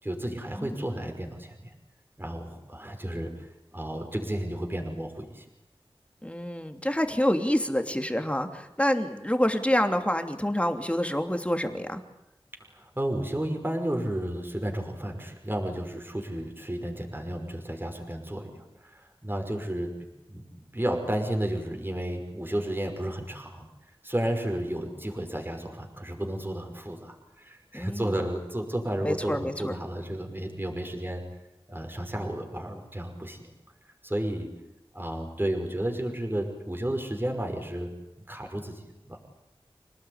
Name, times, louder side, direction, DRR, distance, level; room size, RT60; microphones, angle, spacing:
voice 1, 0.0-1.7 2.2-3.3 3.7-5.4 12.7-19.9 20.3-23.7 24.0-31.2 31.7-33.4 34.0-34.5 34.9-37.9 38.3-38.8 39.1-39.2, right 1 dB, 20° right, 2 dB, 5.6 m, -32 dB
voice 2, 6.2-12.0 27.7-28.1 29.0-29.7, equal, 15° left, 6 dB, 3.0 m, -27 dB
27.5 x 19.0 x 9.7 m, 0.92 s
wide cardioid pair, 60°, 10 cm